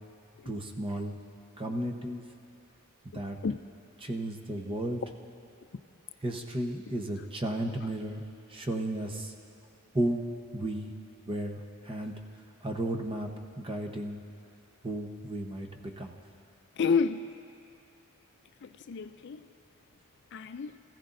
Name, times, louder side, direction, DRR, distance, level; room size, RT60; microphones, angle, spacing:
voice 1, 0.5-1.2 1.6-2.2 3.1-3.4 4.0-5.0 6.2-8.2 8.5-9.3 9.9-10.2 10.5-10.9 11.3-12.1 12.6-13.3 13.6-14.2 14.8-16.1, right 1 dB, 25° right, 0.9 m, -33 dB
voice 2, 16.8-17.3 18.6-19.4 20.3-20.7, left 5 dB, 55° left, 0.4 m, -30 dB
24.5 x 15.0 x 2.6 m
head